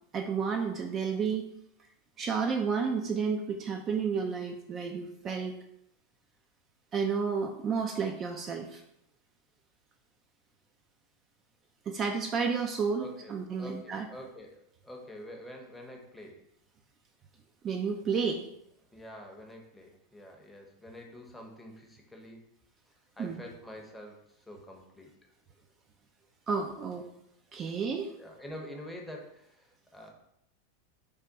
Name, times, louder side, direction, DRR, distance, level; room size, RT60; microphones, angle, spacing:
voice 1, 0.1-1.4 2.2-5.6 6.9-8.8 11.9-14.1 17.6-18.4 23.2-23.4 26.5-27.1 27.5-28.1, right 5 dB, 35° right, 3 dB, 0.3 m, -31 dB
voice 2, 13.0-16.4 18.0-18.1 18.9-22.4 23.2-25.1 28.2-30.1, left 1 dB, 5° left, 0 dB, 0.7 m, -47 dB
3.4 x 2.2 x 3.8 m, 0.79 s
hypercardioid pair, 115°, 0 cm